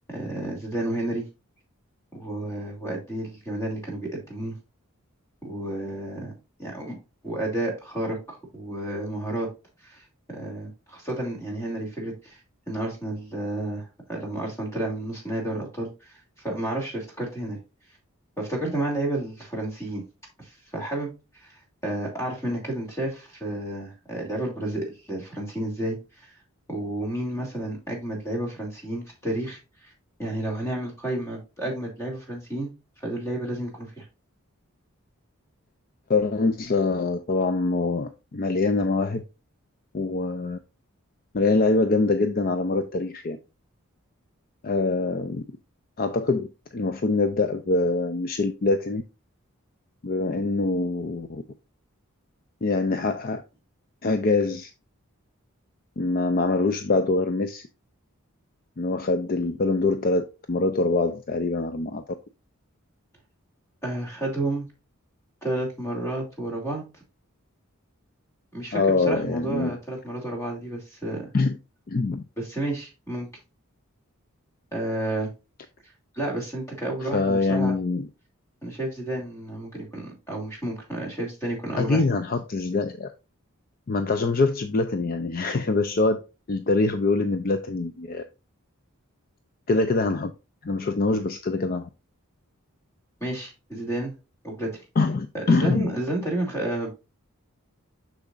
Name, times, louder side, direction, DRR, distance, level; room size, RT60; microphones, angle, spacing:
voice 1, 0.1-1.2 2.1-4.5 5.4-6.3 6.6-6.9 7.2-9.5 9.8-12.4 12.7-17.6 18.4-20.0 20.4-26.3 26.7-29.9 30.2-32.7 33.0-34.0 63.8-64.7 65.4-66.8 68.5-71.3 72.4-73.3 74.7-75.3 76.1-77.8 78.6-82.0 93.2-94.1 94.4-94.7 95.3-96.9, right 1 dB, 15° left, 2.6 m, -31 dB
voice 2, 36.1-39.2 39.9-40.6 41.3-43.4 44.6-45.4 46.0-49.0 50.0-51.4 52.6-53.4 54.0-54.7 56.0-57.7 58.8-62.0 68.7-69.8 71.3-71.6 71.9-72.2 77.0-78.1 81.8-83.1 83.9-86.2 86.5-88.2 89.7-90.3 90.6-91.9 95.0-95.9, left 3 dB, 40° left, 0.4 m, -24 dB
6.7 x 6.3 x 2.5 m
head